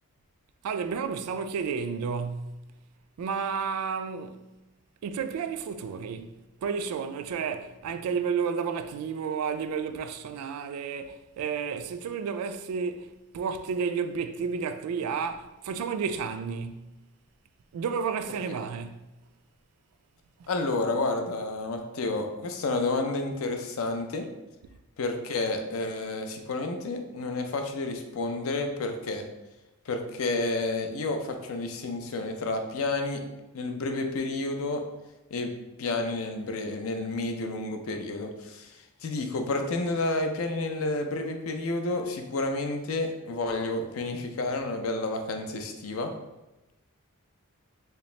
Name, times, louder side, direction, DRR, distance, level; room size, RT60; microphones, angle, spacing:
voice 1, 0.6-2.6 3.2-4.4 5.0-6.4 6.6-16.9 17.7-19.0, right 6 dB, 90° right, 0.3 m, -31 dB
voice 2, 20.5-24.3 25.0-29.3 29.9-33.2 33.5-34.8 35.3-35.5 35.8-46.1, left 2 dB, 70° left, 0.5 m, -30 dB
3.4 x 2.8 x 3.1 m
head